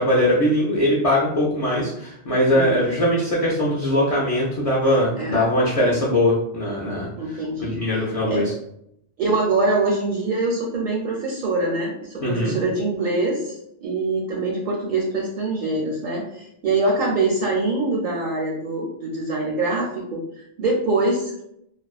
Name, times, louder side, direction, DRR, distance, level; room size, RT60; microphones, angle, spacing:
voice 1, 0.0-7.1 7.6-8.5 12.2-12.5, left 1 dB, 50° left, -5 dB, 0.4 m, -21 dB
voice 2, 2.5-2.8 5.2-5.5 5.8-5.9 7.2-8.0 8.3-8.4 9.2-21.4, right 2 dB, 60° right, -2 dB, 0.6 m, -24 dB
2.4 x 2.2 x 2.3 m, 0.77 s
omnidirectional pair, 1.1 m